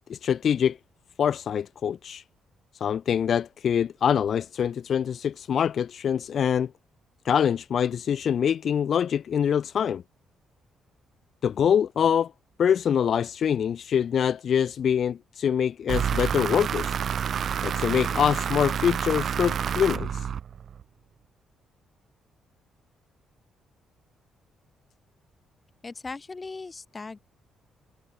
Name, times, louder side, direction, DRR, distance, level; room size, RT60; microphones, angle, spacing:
voice 1, 0.1-0.8 1.2-2.2 2.8-6.7 7.2-10.0 11.4-12.3 12.6-17.0 17.6-20.3, left 8 dB, 60° left, 0.4 m, -24 dB
sound 1, 15.9-20.8, right 8 dB, 55° right, 0.9 m, -28 dB
voice 2, 25.8-27.2, left 3 dB, 25° left, 2.0 m, -38 dB
cardioid pair, 90°, 0 cm